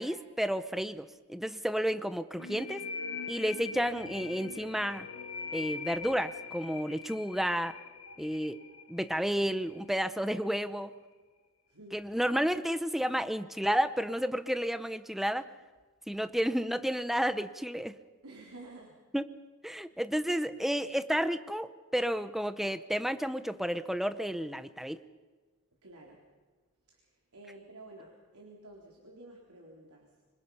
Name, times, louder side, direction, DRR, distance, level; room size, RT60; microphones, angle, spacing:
voice 1, 0.0-2.8 3.3-5.1 5.5-7.7 8.2-8.6 8.9-10.9 11.9-15.4 16.1-18.0 19.1-19.2 19.6-25.0, equal, ahead, 11 dB, 0.7 m, -31 dB
sound 1, 2.4-9.8, left 5 dB, 80° left, 1.7 m, -42 dB
voice 2, 11.7-12.0 18.2-19.0 25.8-26.2 26.9-30.1, right 2 dB, 90° right, -1 dB, 3.8 m, -51 dB
25.5 x 25.5 x 5.6 m, 1.4 s
head